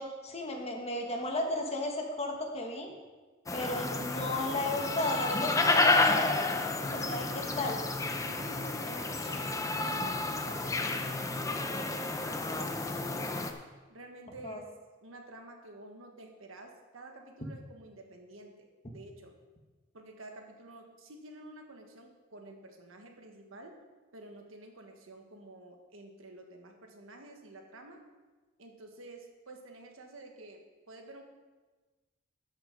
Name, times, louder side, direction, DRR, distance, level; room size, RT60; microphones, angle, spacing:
voice 1, 0.0-2.9 3.5-6.4 6.9-7.2 7.6-7.8 8.9-9.4 14.4-14.6, left 2 dB, 30° left, 2 dB, 1.4 m, -34 dB
sound 1, 3.5-13.5, left 3 dB, 15° left, 0.7 m, -31 dB
voice 2, 6.8-7.7 8.2-13.4 13.9-14.6 15.0-19.3 19.9-23.8 24.1-28.1 28.6-31.2, right 2 dB, 85° right, 3 dB, 1.5 m, -50 dB
13.5 x 6.1 x 5.2 m, 1.3 s
head